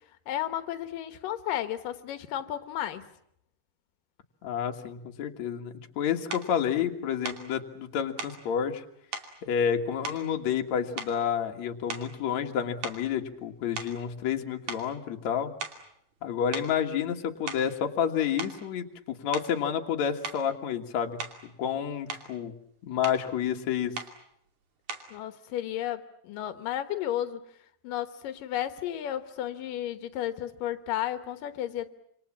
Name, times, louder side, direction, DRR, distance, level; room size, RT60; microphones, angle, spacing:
voice 1, 0.3-3.1 25.1-27.4 27.8-31.9, left 12 dB, 90° left, 10 dB, 2.9 m, -33 dB
voice 2, 4.4-8.8 9.4-15.5 16.2-22.5 22.8-24.0, left 8 dB, 60° left, 4 dB, 2.9 m, -30 dB
sound 1, 6.3-6.5 7.2-7.5 8.2-8.4 9.1-9.3 10.0-10.7 11.0-11.4 11.9-12.2 12.8-14.4 14.7-14.9 15.6-15.9 16.5-16.8 17.3-17.8 18.4-18.6 19.3-19.6 20.2-20.5 21.2-21.5 21.9-22.3 23.0-23.3 24.0-24.2 24.9-25.2, right 5 dB, 65° right, 4.0 m, -38 dB
27.0 x 26.5 x 7.3 m, 0.73 s
omnidirectional pair, 3.7 m